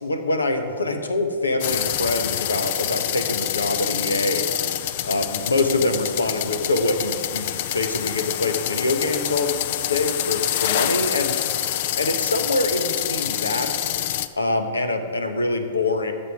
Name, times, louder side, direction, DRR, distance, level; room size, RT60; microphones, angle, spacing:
voice 1, 0.0-4.5 5.0-9.6 9.9-11.4 12.0-13.7 14.4-16.1, left 2 dB, 90° left, 7 dB, 1.1 m, -24 dB
sound 1, 1.6-14.3, left 11 dB, 55° left, 0.5 m, -26 dB
13.5 x 7.6 x 4.8 m, 2.3 s
hypercardioid pair, 115°, 0 cm